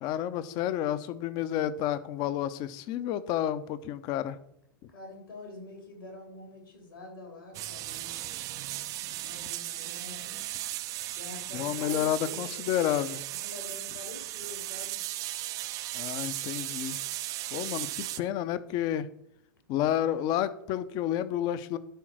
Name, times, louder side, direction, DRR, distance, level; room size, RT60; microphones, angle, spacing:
voice 1, 0.0-4.4 11.5-13.2 15.9-17.0 17.5-19.1 19.7-21.8, left 11 dB, 35° left, 14 dB, 0.7 m, -30 dB
voice 2, 4.9-8.2 9.2-10.3 11.1-12.6 13.3-15.0, left 2 dB, 75° left, 1 dB, 3.7 m, -46 dB
sound 1, 7.5-18.2, right 15 dB, 30° right, 0.4 m, -36 dB
11.5 x 3.9 x 6.1 m, 0.75 s
figure-of-eight pair, 100°, 12 cm